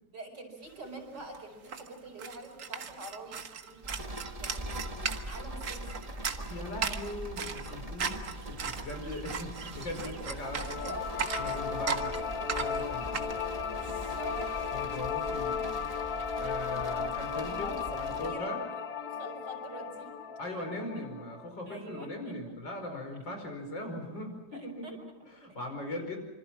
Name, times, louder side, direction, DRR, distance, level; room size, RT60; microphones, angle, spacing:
voice 1, 0.1-3.8 4.4-6.1 10.0-11.3 11.6-12.7 14.2-14.7 16.5-17.1 17.6-18.6 19.0-20.9 21.7-22.4 24.5-24.9 25.5-25.6, right 2 dB, 70° right, 3 dB, 5.6 m, -46 dB
sound 1, 0.8-0.9 1.1-15.0, right 6 dB, 50° right, 1.5 m, -38 dB
sound 2, 3.8-18.3, right 1 dB, 20° right, 1.9 m, -42 dB
voice 2, 6.4-10.9 11.3-12.1 12.5-13.5 14.7-15.6 16.4-18.6 20.4-25.0 25.4-26.2, left 1 dB, 90° left, 4 dB, 6.0 m, -40 dB
sound 3, 10.4-21.5, left 6 dB, 60° left, 1.3 m, -35 dB
26.5 x 25.5 x 6.1 m, 1.1 s
omnidirectional pair, 1.9 m